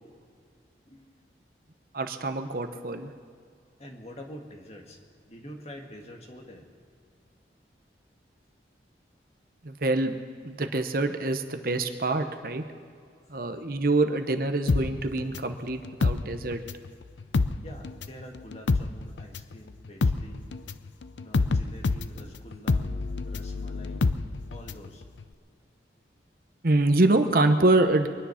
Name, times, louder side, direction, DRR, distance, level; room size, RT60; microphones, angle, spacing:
voice 1, 0.9-1.2 3.8-5.0 5.3-6.7 13.4-13.5 17.6-20.5 21.2-24.1 24.5-25.0, equal, 35° left, 1 dB, 1.8 m, -46 dB
voice 2, 1.9-3.1 9.6-10.2 10.4-12.6 13.3-16.6 26.6-28.1, right 2 dB, 50° right, 7 dB, 0.9 m, -25 dB
sound 1, 14.7-16.9 17.2-24.9 25.2-25.3, left 3 dB, 80° left, 0.5 m, -27 dB
24.0 x 10.0 x 5.8 m, 2.2 s
head